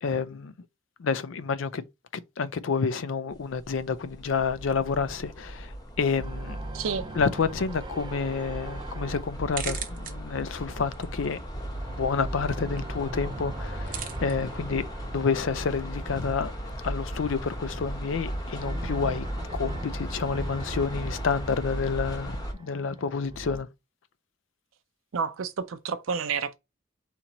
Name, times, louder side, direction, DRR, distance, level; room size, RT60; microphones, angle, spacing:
voice 1, 0.0-0.5 1.0-1.8 2.1-6.6 7.2-11.4 11.9-14.8 15.1-16.5 16.8-19.3 19.5-23.7, left 5 dB, 70° left, 0.5 m, -29 dB
sound 1, 3.3-22.5, equal, 20° left, 1.1 m, -37 dB
sound 2, 6.2-11.2 11.5-16.8 17.6-23.6, right 2 dB, 25° right, 0.4 m, -41 dB
voice 2, 6.7-7.1 25.1-26.6, right 6 dB, 85° right, 0.5 m, -30 dB
sound 3, 7.7-19.0, right 8 dB, 45° right, 0.8 m, -45 dB
4.3 x 2.9 x 3.9 m
head